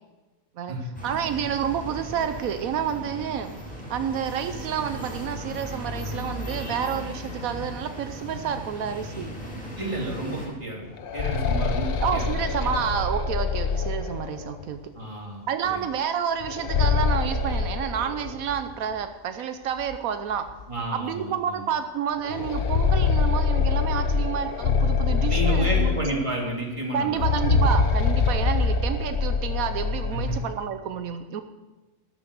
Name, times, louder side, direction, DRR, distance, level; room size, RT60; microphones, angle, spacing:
sound 1, 0.9-10.5, equal, 5° left, 4.5 m, -36 dB
voice 1, 1.0-3.5 3.9-9.4 12.0-14.8 15.5-20.4 20.9-26.0 26.9-31.4, right 8 dB, 85° right, 9 dB, 1.2 m, -29 dB
voice 2, 9.8-10.8 11.1-12.3 12.6-12.7 14.9-15.4 15.7-15.8 20.7-21.6 25.3-27.2 30.1-30.4, right 1 dB, 20° right, -2 dB, 2.9 m, -31 dB
sound 2, 10.8-14.6 16.4-18.6 18.9-19.0 19.9-20.0 20.5-20.6 22.2-26.4 27.1-30.5, left 5 dB, 50° left, 0.9 m, -24 dB
13.0 x 8.0 x 6.5 m, 1.1 s
omnidirectional pair, 1.4 m